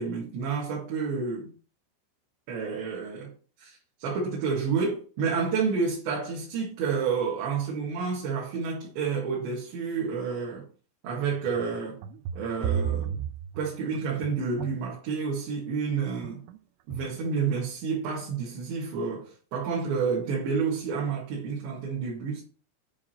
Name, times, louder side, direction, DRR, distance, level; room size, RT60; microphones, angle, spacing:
voice 1, 0.0-1.5 2.5-3.3 3.6-10.7 11.0-12.0 12.4-13.3 13.6-16.4 16.9-22.4, right 5 dB, 70° right, 3.9 m, -30 dB
sound 1, 11.3-14.9 16.2-16.6 16.9-17.3, right 8 dB, 85° right, 3.1 m, -33 dB
9.6 x 4.9 x 4.5 m
omnidirectional pair, 5.6 m